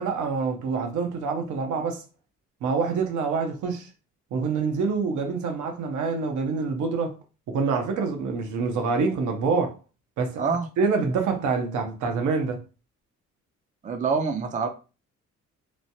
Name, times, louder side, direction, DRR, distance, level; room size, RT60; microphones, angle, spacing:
voice 1, 0.0-2.0 2.6-3.9 4.3-7.2 7.5-9.7 10.2-10.4 10.8-12.6, right 4 dB, 75° right, 0.8 m, -26 dB
voice 2, 10.4-10.7 13.8-14.7, right 5 dB, 25° right, 0.5 m, -25 dB
3.1 x 2.1 x 2.7 m
cardioid pair, 90°, 30 cm